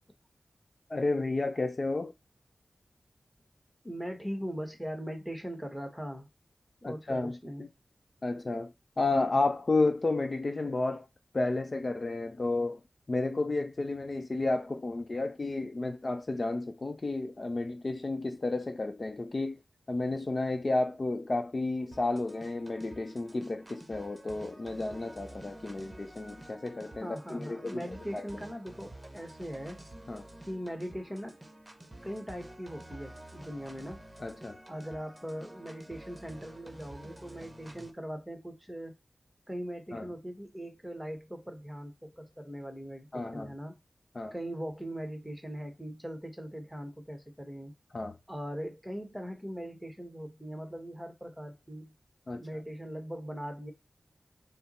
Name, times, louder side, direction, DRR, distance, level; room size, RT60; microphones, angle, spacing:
voice 1, 0.9-2.1 6.8-7.7 8.2-11.1 11.3-12.8 13.1-19.6 19.9-28.2 30.1-30.2 34.2-34.6 39.9-40.1 43.1-43.5 44.1-44.3 47.9-48.1 52.3-52.4, left 2 dB, 45° left, 0.6 m, -32 dB
voice 2, 3.8-6.3 6.8-7.6 27.0-29.8 30.5-31.4 32.0-34.0 34.7-38.9 39.5-43.8 44.3-47.7 48.3-51.9 52.3-53.7, equal, 5° right, 1.2 m, -40 dB
sound 1, 21.9-37.9, right 1 dB, 25° right, 0.9 m, -50 dB
5.3 x 2.0 x 4.2 m
wide cardioid pair, 70°, 0 cm